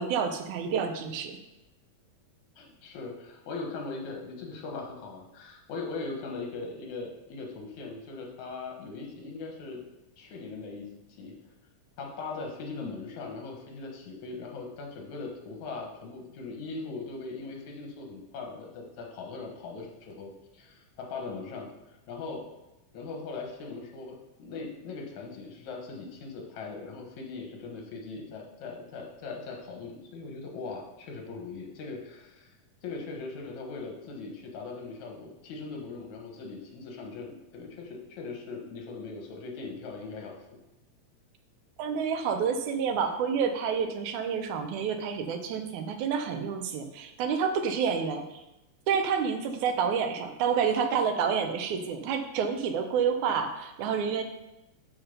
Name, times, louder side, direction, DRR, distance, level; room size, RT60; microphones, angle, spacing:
voice 1, 0.0-1.4 41.8-48.4 48.9-54.2, right 6 dB, 90° right, 7 dB, 2.3 m, -29 dB
voice 2, 2.6-9.8 10.2-11.3 12.0-21.7 22.1-22.5 22.9-32.5 32.8-40.3, left 3 dB, 80° left, 0 dB, 2.7 m, -40 dB
11.0 x 4.2 x 5.4 m, 0.96 s
omnidirectional pair, 3.3 m